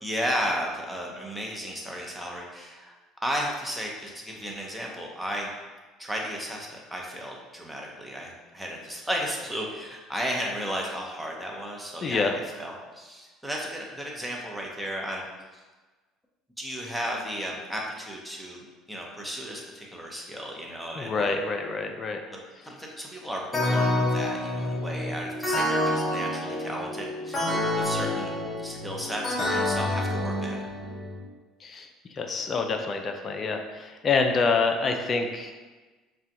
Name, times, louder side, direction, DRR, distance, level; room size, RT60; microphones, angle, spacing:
voice 1, 0.0-2.9 3.2-5.5 6.0-12.3 12.6-15.5 16.6-18.6 18.9-21.4 22.3-30.6, equal, 5° right, -2 dB, 0.8 m, -34 dB
voice 2, 12.0-12.3 20.9-22.2 31.6-35.5, left 4 dB, 40° left, 4 dB, 0.4 m, -27 dB
sound 1, 23.5-31.2, left 1 dB, 25° left, 0.9 m, -28 dB
4.9 x 2.3 x 2.8 m, 1.3 s
hypercardioid pair, 65°, 0 cm